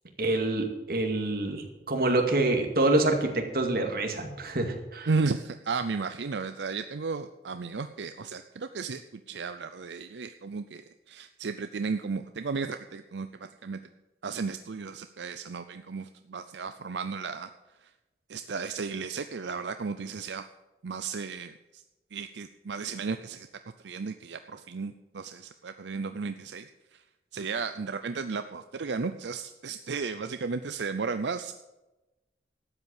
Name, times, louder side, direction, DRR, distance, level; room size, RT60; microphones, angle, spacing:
voice 1, 0.2-5.1, right 2 dB, 60° right, 3 dB, 2.2 m, -26 dB
voice 2, 5.1-13.8 14.2-17.5 17.8-17.9 18.3-20.5 20.8-21.8 22.1-23.5 23.8-27.0 27.3-31.5, right 4 dB, 85° right, 9 dB, 0.6 m, -34 dB
12.5 x 8.2 x 7.1 m, 1.0 s
head